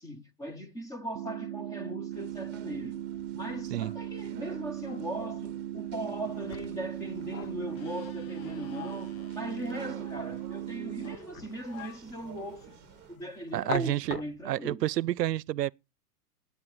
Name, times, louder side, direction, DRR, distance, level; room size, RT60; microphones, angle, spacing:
voice 1, 0.0-3.0 3.3-14.8, right 1 dB, 5° left, 0.6 m, -39 dB
sound 1, 1.1-11.2, right 11 dB, 45° right, 0.7 m, -38 dB
sound 2, 2.1-13.2, right 12 dB, 20° right, 0.9 m, -53 dB
sound 3, 6.2-14.7, left 11 dB, 60° left, 1.0 m, -45 dB
voice 2, 13.5-14.2 14.4-15.7, right 13 dB, 85° right, 0.6 m, -29 dB
17.5 x 8.5 x 4.9 m
hypercardioid pair, 135°, 47 cm